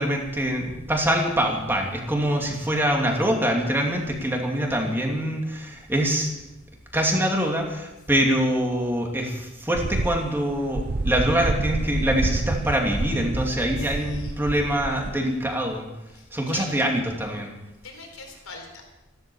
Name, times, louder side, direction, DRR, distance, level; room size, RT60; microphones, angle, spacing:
voice 1, 0.0-6.3 6.9-15.9 16.3-17.5, equal, 10° right, 1 dB, 2.7 m, -24 dB
sound 1, 9.7-15.1, right 2 dB, 50° right, 0.8 m, -28 dB
voice 2, 13.6-14.3 16.1-16.7 17.8-18.9, left 4 dB, 80° left, 2 dB, 4.4 m, -41 dB
15.0 x 13.0 x 7.1 m, 0.99 s
head